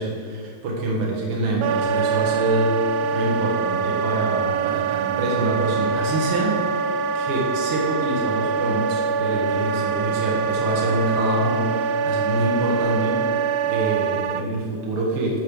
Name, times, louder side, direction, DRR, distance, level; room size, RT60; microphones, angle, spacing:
voice 1, 0.0-13.2 13.6-15.4, right 1 dB, 55° right, -3 dB, 1.6 m, -26 dB
Wind instrument woodwind instrument, 1.6-14.5, right 5 dB, 90° right, 2.5 m, -24 dB
8.5 x 5.7 x 6.9 m, 2.1 s
omnidirectional pair, 4.5 m